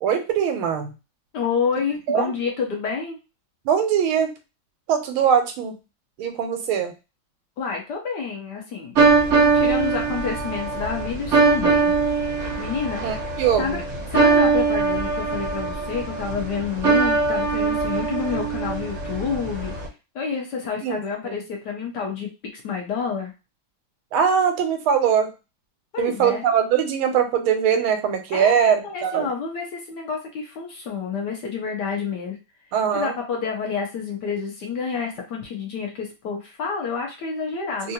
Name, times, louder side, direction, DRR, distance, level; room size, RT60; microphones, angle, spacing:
voice 1, 0.0-0.9 2.1-2.3 3.6-4.3 4.9-5.7 6.2-6.9 13.0-13.8 20.8-21.4 24.1-25.3 26.0-29.3 32.7-33.1 37.8-37.9, right 8 dB, 85° right, 6 dB, 1.5 m, -21 dB
voice 2, 1.3-3.2 7.6-8.9 9.5-13.1 13.6-13.8 14.1-19.7 20.1-23.3 25.9-26.4 28.3-32.4 32.9-37.9, left 6 dB, 65° left, 0 dB, 1.2 m, -29 dB
sound 1, 9.0-19.9, right 4 dB, 55° right, 0.9 m, -22 dB
3.6 x 2.4 x 2.7 m, 0.28 s
omnidirectional pair, 2.3 m